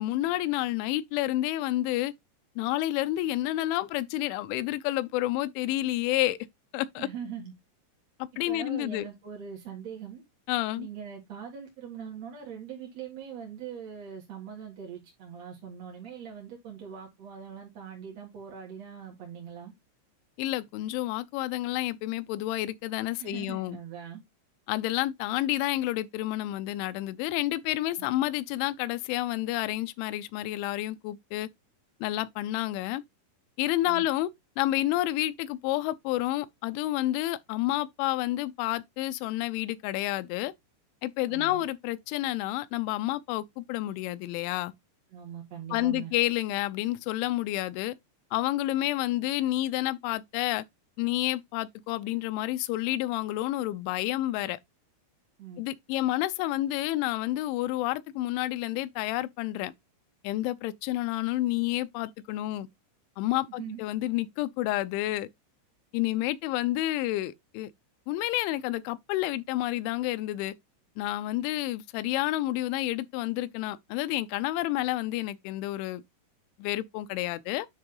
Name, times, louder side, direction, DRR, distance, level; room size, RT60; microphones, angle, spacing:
voice 1, 0.0-2.1 2.6-6.4 6.7-7.1 8.4-9.1 10.5-10.9 20.4-23.8 24.7-31.5 32.0-33.0 33.6-34.3 34.6-40.5 41.0-44.7 45.7-48.0 48.3-50.6 51.0-54.6 55.6-59.7 60.2-62.7 63.2-65.3 65.9-67.7 68.1-70.5 71.0-76.0 76.6-77.7, left 16 dB, 90° left, 2.6 m, -29 dB
voice 2, 7.0-7.5 8.5-10.2 10.7-19.7 23.2-24.2 28.0-28.1 33.9-34.0 41.3-41.6 45.1-46.1 55.4-55.6 63.5-63.8, right 8 dB, 55° right, 2.0 m, -41 dB
10.0 x 3.6 x 3.8 m
omnidirectional pair, 6.0 m